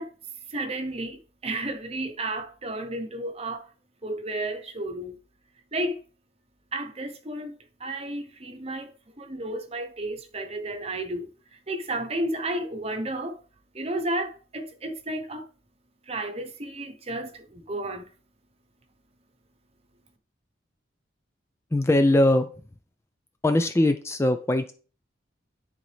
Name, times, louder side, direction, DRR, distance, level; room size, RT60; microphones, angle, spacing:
voice 1, 0.0-3.7 4.0-5.2 5.7-6.0 6.7-13.5 13.7-15.5 16.0-18.2, right 1 dB, 30° right, 0.9 m, -33 dB
voice 2, 21.7-22.5 23.4-24.7, left 1 dB, 15° left, 0.3 m, -21 dB
10.5 x 4.0 x 3.3 m
head